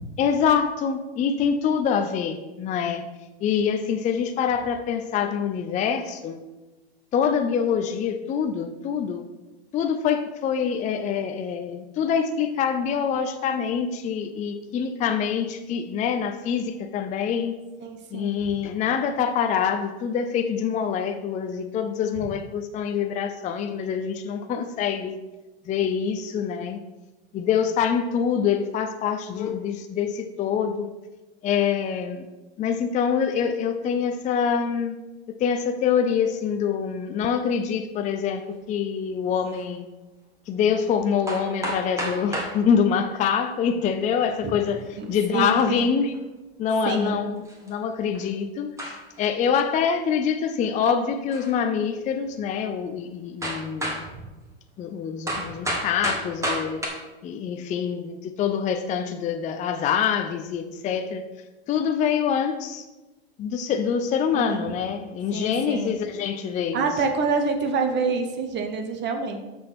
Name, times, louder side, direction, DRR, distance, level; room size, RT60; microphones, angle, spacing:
voice 1, 0.2-3.1 3.4-6.4 7.1-9.2 9.7-17.5 18.1-25.2 25.7-26.8 27.3-30.9 31.4-32.3 32.6-34.9 35.4-39.8 40.5-46.1 46.6-54.0 54.8-56.8 57.2-61.2 61.7-62.9 63.4-66.9, left 7 dB, 25° left, 6 dB, 0.5 m, -25 dB
voice 2, 17.8-18.4 22.2-22.3 44.4-44.5 45.0-45.9 46.8-47.2 64.3-64.7 65.3-65.9 66.7-69.5, right 4 dB, 35° right, 5 dB, 1.2 m, -27 dB
sound 1, 39.5-39.6 40.9-41.0 41.3-42.6 43.9-44.3 45.8-45.9 46.1-46.2 47.4-47.7 48.1-48.3 48.8-49.2 51.3-51.6 52.2-52.3 53.4-54.1 55.3-56.9, right 1 dB, 10° right, 2.0 m, -30 dB
6.3 x 6.2 x 6.1 m, 1.1 s
hypercardioid pair, 115°, 32 cm